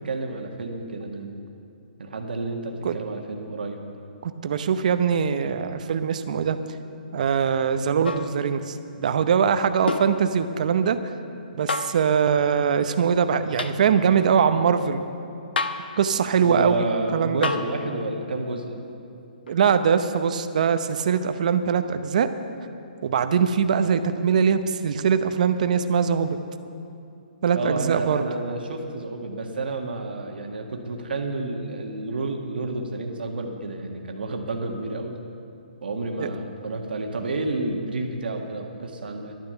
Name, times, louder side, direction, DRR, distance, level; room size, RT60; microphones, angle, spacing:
voice 1, 0.0-1.3 2.0-3.8 16.4-18.8 27.5-35.2 35.8-39.3, right 2 dB, 80° right, 2 dB, 1.6 m, -30 dB
voice 2, 4.2-6.6 7.1-11.1 11.5-15.0 16.0-16.9 17.1-17.5 19.5-22.3 23.0-26.4 27.4-28.2 36.2-36.3, right 7 dB, 50° right, 10 dB, 0.7 m, -22 dB
sound 1, 8.0-8.4 9.9-10.2 11.7-12.0 13.6-13.8 15.6-15.9 17.4-17.7 19.5-19.6, left 4 dB, 80° left, 0.8 m, -28 dB
12.0 x 10.5 x 6.9 m, 2.6 s
hypercardioid pair, 165°, 5 cm